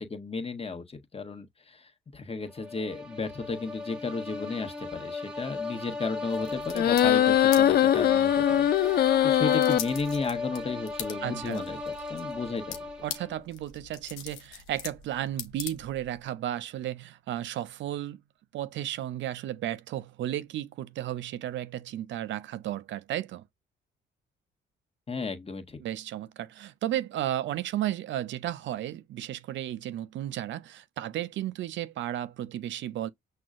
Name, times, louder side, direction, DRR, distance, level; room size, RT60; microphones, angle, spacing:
voice 1, 0.0-8.7 8.9-12.8 25.1-25.8, left 4 dB, 30° left, 1.3 m, -34 dB
sound 1, 2.5-13.5, left 3 dB, 5° right, 1.4 m, -36 dB
sound 2, 6.3-16.2, left 9 dB, 85° left, 0.8 m, -43 dB
sound 3, 6.8-9.8, left 11 dB, 50° left, 0.4 m, -21 dB
voice 2, 11.2-11.6 13.0-18.2 18.5-23.4 25.8-33.1, right 12 dB, 65° right, 0.5 m, -34 dB
6.0 x 2.2 x 2.4 m
supercardioid pair, 65°, 20 cm